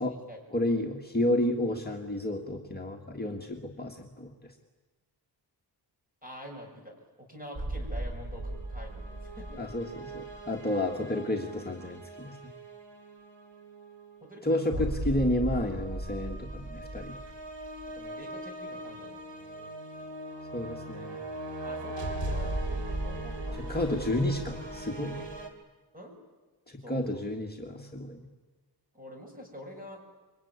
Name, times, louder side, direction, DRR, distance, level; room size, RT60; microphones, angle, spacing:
voice 1, 0.0-0.4 6.2-9.6 14.2-14.9 17.9-19.7 21.6-24.0 25.9-26.1 26.8-27.2 28.9-30.0, equal, 20° right, 2 dB, 6.8 m, -46 dB
voice 2, 0.5-4.5 9.6-12.4 14.4-17.2 20.5-21.2 23.7-25.2 26.7-28.3, left 1 dB, 20° left, 0 dB, 1.8 m, -31 dB
sound 1, 7.6-25.5, right 1 dB, 85° right, 3.5 m, -38 dB
26.5 x 23.0 x 9.6 m, 1.3 s
wide cardioid pair, 145°, 42 cm